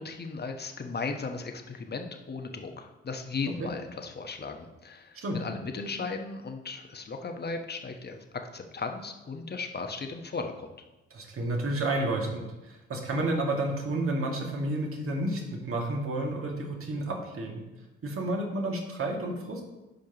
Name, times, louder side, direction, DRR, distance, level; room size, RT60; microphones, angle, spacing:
voice 1, 0.0-8.2 8.5-10.7, left 4 dB, 35° left, 5 dB, 1.1 m, -36 dB
voice 2, 11.1-17.6 18.0-19.6, right 1 dB, 50° right, 0 dB, 2.1 m, -31 dB
12.0 x 5.1 x 3.0 m, 1.0 s
hypercardioid pair, 55°, 29 cm